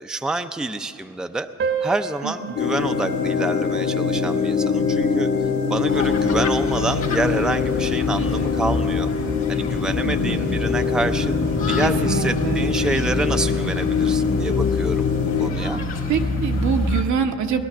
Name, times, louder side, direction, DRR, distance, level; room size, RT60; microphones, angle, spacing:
voice 1, 0.0-1.5 1.8-5.3 5.7-9.1 9.5-15.8, right 2 dB, ahead, 8 dB, 0.5 m, -27 dB
sound 1, 1.6-6.6, right 6 dB, 45° right, 1.0 m, -33 dB
voice 2, 2.2-2.5 10.0-10.6 11.8-12.7 16.1-17.6, right 6 dB, 75° right, 5 dB, 1.0 m, -25 dB
sound 2, 2.6-15.5, left 5 dB, 70° left, 1.6 m, -23 dB
sound 3, 5.9-17.0, left 3 dB, 45° left, 1.6 m, -27 dB
19.0 x 11.5 x 6.1 m, 2.5 s
cardioid pair, 90°, 30 cm